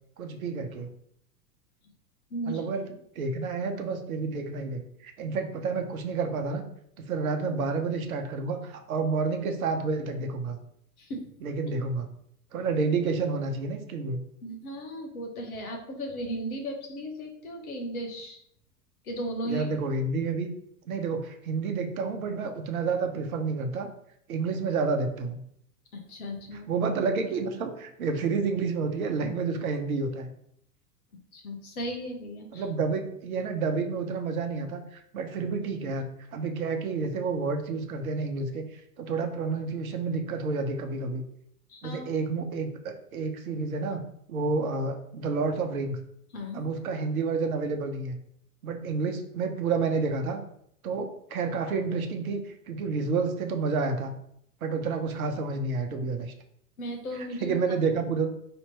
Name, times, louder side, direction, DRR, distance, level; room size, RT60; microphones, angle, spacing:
voice 1, 0.2-0.9 2.5-2.9 3.2-6.6 7.1-10.6 11.4-12.1 12.5-14.2 19.4-20.5 20.9-23.9 24.3-25.4 26.7-30.3 32.5-36.0 36.3-41.2 41.8-44.0 44.3-46.0 46.5-48.2 48.6-50.4 50.8-54.1 54.6-56.3 57.2-58.3, right 4 dB, 65° right, 5 dB, 0.8 m, -29 dB
voice 2, 2.3-2.6 11.0-11.3 14.4-18.4 19.0-19.7 25.9-26.7 31.3-32.7 41.7-42.1 46.3-46.7 56.8-57.5, right 1 dB, 65° left, 3 dB, 1.1 m, -36 dB
3.3 x 2.9 x 4.3 m, 0.69 s
figure-of-eight pair, 90°, 46 cm